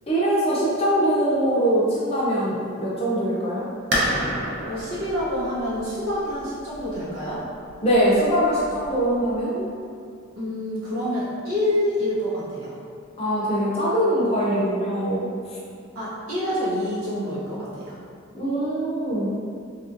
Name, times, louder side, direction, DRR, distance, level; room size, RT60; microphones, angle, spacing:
voice 1, 0.1-3.7 7.8-9.8 13.2-15.3 18.3-19.3, right 1 dB, 30° left, -6 dB, 0.5 m, -22 dB
sound 1, 3.9-9.4, equal, 55° right, 0.5 m, -30 dB
voice 2, 4.6-7.5 10.3-12.7 15.9-18.0, left 1 dB, 85° right, -8 dB, 0.9 m, -27 dB
2.9 x 2.5 x 2.5 m, 2.3 s
head